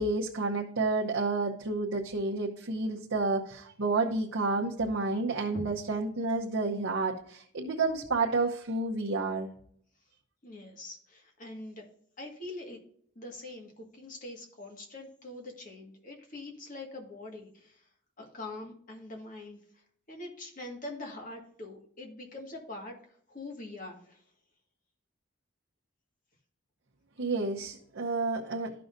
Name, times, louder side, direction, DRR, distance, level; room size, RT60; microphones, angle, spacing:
voice 1, 0.0-9.5 27.2-28.7, right 3 dB, 70° right, -1 dB, 0.9 m, -30 dB
voice 2, 10.4-11.9 12.2-12.8 13.2-17.9 18.2-24.2, left 2 dB, 40° left, 1 dB, 1.7 m, -44 dB
13.0 x 5.7 x 2.6 m, 0.63 s
head